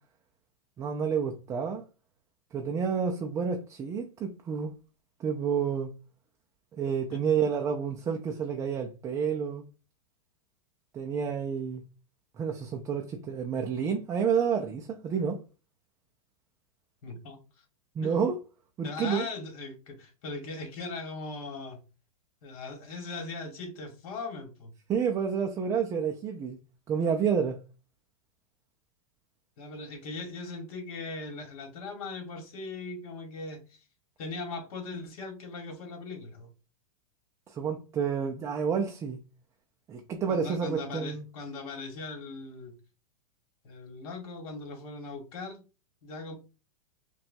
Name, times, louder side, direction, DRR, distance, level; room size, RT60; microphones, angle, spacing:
voice 1, 0.8-1.8 2.5-4.7 5.2-5.9 6.8-9.6 10.9-11.8 12.4-15.4 18.0-18.4 18.8-19.3 24.9-26.6 26.9-27.6 37.5-39.2 39.9-41.2, right 6 dB, 15° right, 0.3 m, -29 dB
voice 2, 17.0-17.6 18.0-18.1 18.8-21.8 22.4-24.7 29.6-33.8 34.2-36.5 40.3-42.7 43.6-45.6 46.0-46.3, left 3 dB, 60° left, 1.6 m, -39 dB
5.6 x 2.3 x 2.6 m
hypercardioid pair, 140°, 20 cm